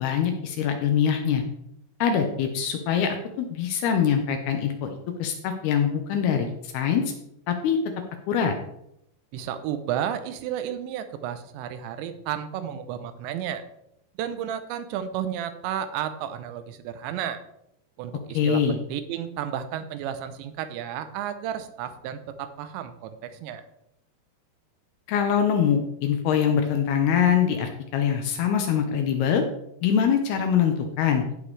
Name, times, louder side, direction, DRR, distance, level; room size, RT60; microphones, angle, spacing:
voice 1, 0.0-1.4 2.0-7.0 7.5-7.8 8.3-8.6 18.3-18.8 25.1-29.4 29.8-31.2, left 8 dB, 75° left, 5 dB, 2.5 m, -23 dB
voice 2, 9.3-13.6 14.2-17.4 18.0-23.6, right 10 dB, 85° right, 10 dB, 3.0 m, -32 dB
15.5 x 5.7 x 3.2 m, 0.79 s
omnidirectional pair, 5.1 m